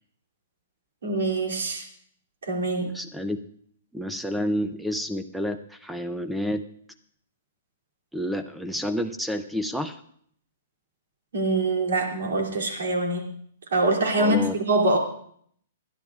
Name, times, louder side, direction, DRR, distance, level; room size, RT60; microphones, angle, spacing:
voice 1, 1.0-1.8 2.4-2.9 11.3-13.3 13.7-15.0, right 2 dB, 85° right, 0 dB, 2.7 m, -24 dB
voice 2, 2.8-3.4 3.9-6.6 8.1-10.0 14.2-14.5, equal, ahead, 9 dB, 0.4 m, -29 dB
28.5 x 10.5 x 2.4 m, 0.63 s
hypercardioid pair, 175°, 0 cm